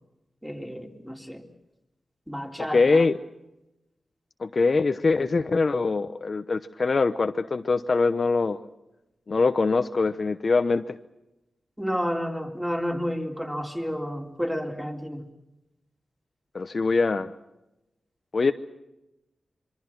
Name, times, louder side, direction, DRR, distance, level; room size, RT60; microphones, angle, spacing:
voice 1, 0.4-1.5 2.3-3.1 11.8-15.3, equal, 5° right, 2 dB, 3.6 m, -31 dB
voice 2, 2.7-3.1 4.4-8.6 9.3-11.0 16.5-17.3 18.3-18.5, left 4 dB, 50° left, 9 dB, 0.9 m, -23 dB
26.0 x 24.0 x 5.9 m, 0.93 s
wide cardioid pair, 90°, 0 cm